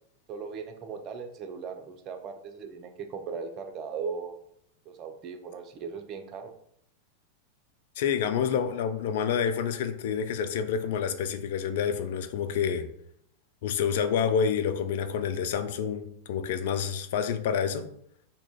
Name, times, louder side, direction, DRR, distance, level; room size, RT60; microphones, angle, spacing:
voice 1, 0.3-4.4 4.9-6.5, right 5 dB, 35° right, 0.4 m, -38 dB
voice 2, 8.0-12.9 13.6-17.9, left 7 dB, 55° left, 0.3 m, -28 dB
2.6 x 2.3 x 3.7 m
figure-of-eight pair, 90°, 0 cm